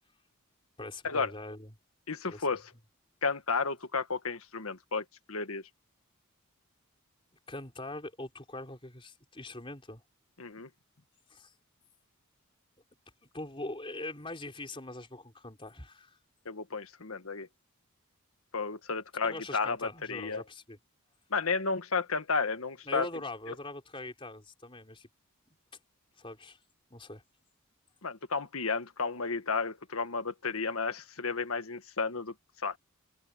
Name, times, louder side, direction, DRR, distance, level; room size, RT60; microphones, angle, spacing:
voice 1, 0.8-1.7 2.3-2.6 7.5-10.0 11.3-11.5 13.3-16.2 19.2-20.8 22.9-25.1 26.2-26.6 26.9-27.2, left 2 dB, 25° left, 4.1 m, -42 dB
voice 2, 2.1-2.7 3.2-5.6 10.4-10.7 16.4-17.5 18.5-20.4 21.3-23.1 28.0-32.8, left 4 dB, 75° left, 1.6 m, -32 dB
head